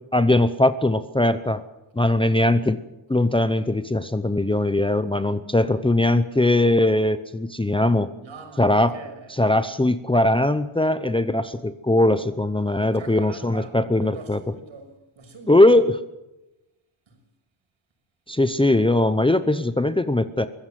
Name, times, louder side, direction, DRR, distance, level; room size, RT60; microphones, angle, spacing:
voice 1, 0.1-1.6 2.0-2.8 3.1-8.1 8.6-8.9 9.4-14.4 15.5-16.0 18.3-20.5, left 1 dB, 10° left, 0.7 m, -20 dB
voice 2, 8.2-9.7 12.7-15.6 17.1-17.2, right 4 dB, 65° right, 6.4 m, -43 dB
23.5 x 16.0 x 7.6 m
wide cardioid pair, 140°, 49 cm